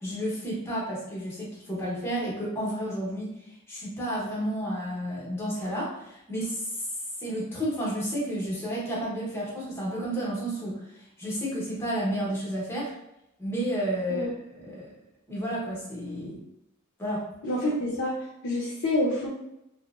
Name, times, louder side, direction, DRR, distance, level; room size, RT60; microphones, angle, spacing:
voice 1, 0.0-3.3 3.7-6.8 7.2-12.9 13.4-14.3 14.5-14.9 15.3-16.4 17.0-17.2, equal, 10° left, -5 dB, 0.8 m, -31 dB
voice 2, 17.4-19.3, left 1 dB, 60° left, -4 dB, 0.5 m, -28 dB
2.8 x 2.0 x 2.3 m, 0.85 s
head